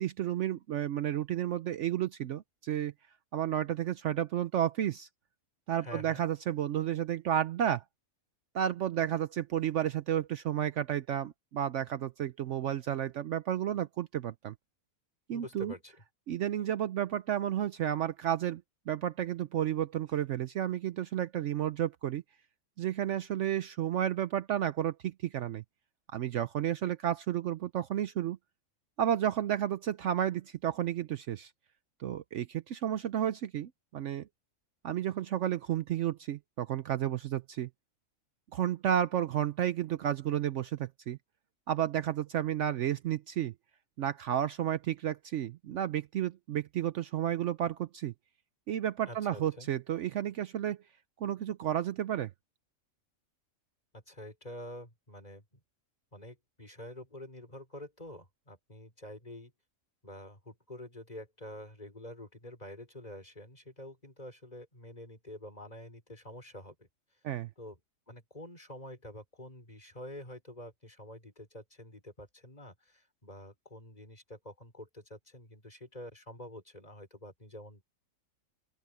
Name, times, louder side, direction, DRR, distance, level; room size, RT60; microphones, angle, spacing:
voice 1, 0.0-2.9 3.3-5.1 5.7-7.8 8.5-14.5 15.3-15.7 16.3-22.2 22.8-25.6 26.1-28.4 29.0-31.5 32.0-34.3 34.8-37.7 38.5-41.2 41.7-43.5 44.0-48.1 48.7-50.8 51.2-52.3 67.2-67.5, right 10 dB, 65° right, 0.9 m, -32 dB
voice 2, 5.8-6.2 15.3-16.0 49.1-49.7 53.9-55.6 56.1-59.5 60.0-66.9 67.6-67.8 68.1-78.0, left 1 dB, 30° left, 4.9 m, -47 dB
open air
omnidirectional pair, 1.4 m